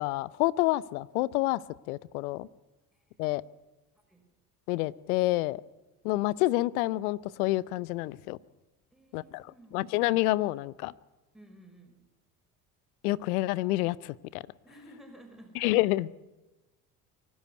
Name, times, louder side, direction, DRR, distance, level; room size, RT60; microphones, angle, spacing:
voice 1, 0.0-1.6 1.9-2.5 3.2-3.4 4.7-5.6 6.0-8.4 9.1-9.4 9.7-10.9 13.0-14.4 15.6-16.2, left 18 dB, 75° left, 21 dB, 0.7 m, -28 dB
voice 2, 8.9-10.0 11.3-12.0 14.6-15.6, right 1 dB, ahead, 4 dB, 5.6 m, -54 dB
24.0 x 12.0 x 9.5 m, 1.1 s
hypercardioid pair, 60°, 45 cm